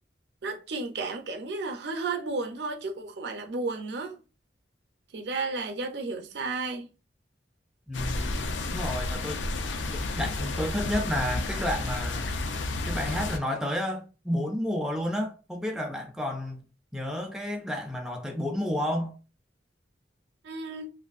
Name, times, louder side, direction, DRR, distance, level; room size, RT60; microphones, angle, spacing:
voice 1, 0.4-4.2 5.1-6.9 20.4-20.9, right 3 dB, 65° right, 0.5 m, -33 dB
sound 1, 7.9-13.4, left 2 dB, 85° left, 0.4 m, -31 dB
voice 2, 7.9-9.4 9.9-12.3 12.9-16.6 16.9-19.1, equal, 5° right, 0.3 m, -31 dB
2.5 x 2.5 x 2.3 m
head